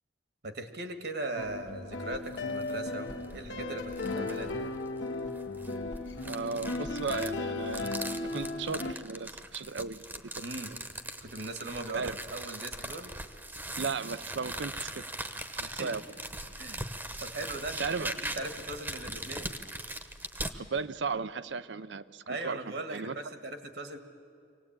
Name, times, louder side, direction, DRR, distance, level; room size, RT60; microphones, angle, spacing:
voice 1, 0.4-4.7 10.4-10.7 11.2-13.1 15.6-15.9 16.6-16.8 17.2-17.9 18.2-19.5 22.3-24.0, right 2 dB, 65° right, 7 dB, 1.7 m, -39 dB
sound 1, 1.4-8.9, left 2 dB, 85° left, 1.3 m, -36 dB
sound 2, 2.3-2.8 3.2-3.3 3.9-4.5 5.3-20.6, right 1 dB, 10° right, 0.9 m, -40 dB
voice 2, 6.2-7.9 8.2-10.2 10.7-10.8 11.9-12.2 13.8-15.0 15.6-16.0 17.8-18.1 20.5-23.2, right 4 dB, 85° right, 14 dB, 0.7 m, -36 dB
24.5 x 18.5 x 8.8 m, 2.2 s
head